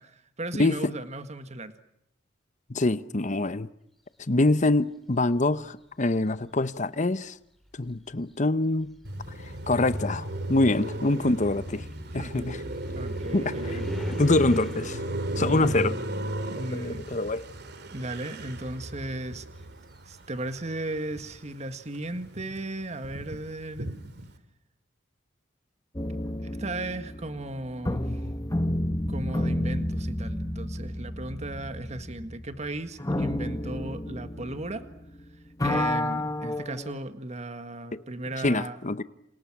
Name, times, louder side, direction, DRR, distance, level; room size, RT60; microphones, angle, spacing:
voice 1, 0.0-1.7 10.7-10.8 11.2-11.4 12.1-12.6 13.0-14.2 15.5-15.8 16.5-17.0 17.9-19.5 20.1-23.9 26.4-28.2 29.1-34.9 35.6-38.8, right 2 dB, 35° right, 1.7 m, -36 dB
voice 2, 2.7-3.7 4.3-7.4 7.7-9.0 9.7-11.8 12.1-12.6 13.3-13.8 14.1-15.0 15.4-16.0 16.7-17.4 38.4-39.0, left 2 dB, 40° left, 1.0 m, -25 dB
sound 1, 5.3-5.8 6.8-6.9 7.5-17.4 17.7-20.3, equal, ahead, 4.5 m, -45 dB
Car passing by, 9.0-21.5 21.9-24.4, right 1 dB, 60° right, 2.7 m, -35 dB
sound 2, 25.9-35.2 35.5-37.0, left 1 dB, 20° left, 1.5 m, -31 dB
29.5 x 28.0 x 6.1 m
head